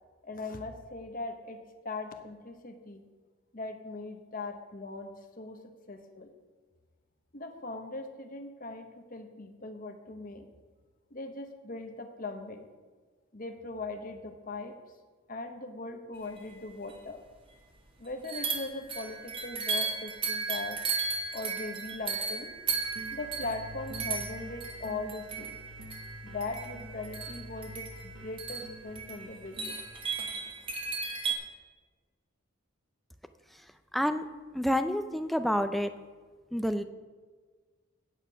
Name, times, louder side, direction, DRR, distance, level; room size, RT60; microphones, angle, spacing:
voice 1, 0.2-1.6 1.8-3.0 3.5-5.6 5.9-6.3 7.3-10.5 11.1-12.7 13.3-14.7 15.3-17.2 18.0-20.8 21.3-22.6 23.1-25.6 26.2-29.8, left 3 dB, 40° left, 5 dB, 1.0 m, -40 dB
sound 1, 16.6-16.7 16.9-17.0 18.2-31.3, right 5 dB, 25° right, 1.2 m, -35 dB
sound 2, 22.7-30.1, equal, 55° right, 1.0 m, -47 dB
voice 2, 33.9-34.3 34.5-35.9 36.5-36.8, equal, ahead, 8 dB, 0.4 m, -28 dB
9.0 x 8.3 x 5.7 m, 1.4 s
head